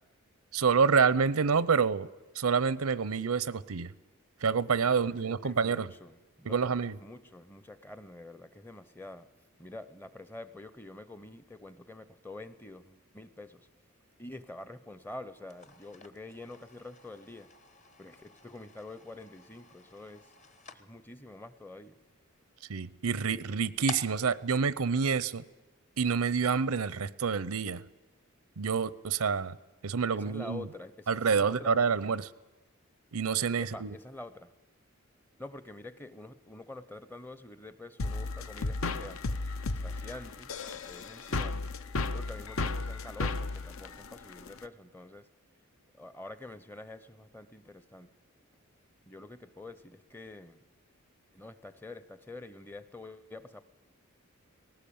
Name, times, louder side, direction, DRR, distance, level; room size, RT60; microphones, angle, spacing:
voice 1, 0.5-2.1 2.4-3.9 4.4-5.9 6.4-7.0 22.7-25.4 26.0-27.8 28.6-29.6 29.8-30.7 31.1-32.3 33.1-33.9, right 5 dB, 85° right, 18 dB, 0.7 m, -27 dB
voice 2, 4.8-9.3 9.6-13.7 14.2-17.5 18.0-20.3 20.7-22.0 30.1-32.1 33.6-34.5 35.4-39.2 39.7-41.7 42.1-45.3 46.0-48.1 49.1-50.6 51.3-53.6, left 2 dB, 10° left, 14 dB, 0.7 m, -47 dB
sound 1, 15.4-25.8, left 2 dB, 35° left, 1.1 m, -50 dB
sound 2, 38.0-44.6, left 3 dB, 65° left, 0.8 m, -34 dB
19.0 x 17.5 x 8.6 m, 1.1 s
head